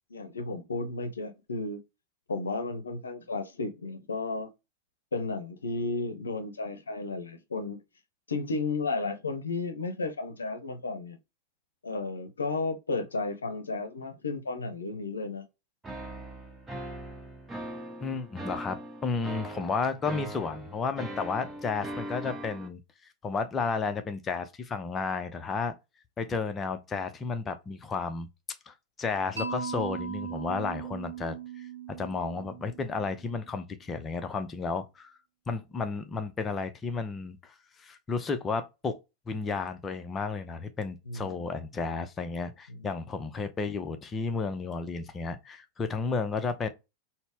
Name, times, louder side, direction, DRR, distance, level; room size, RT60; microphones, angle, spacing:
voice 1, 0.1-1.8 2.3-4.5 5.1-7.8 8.3-11.2 11.8-15.5 41.1-41.4 42.7-42.9, left 3 dB, 75° left, 0.7 m, -33 dB
sound 1, 15.8-22.7, right 1 dB, 10° right, 1.0 m, -40 dB
voice 2, 18.0-22.8 23.2-25.7 26.2-28.3 28.7-35.2 35.5-39.0 39.3-46.7, left 4 dB, 20° left, 0.6 m, -32 dB
Mallet percussion, 29.4-33.4, right 5 dB, 70° right, 0.7 m, -38 dB
4.1 x 2.1 x 3.4 m
figure-of-eight pair, 90°, 0 cm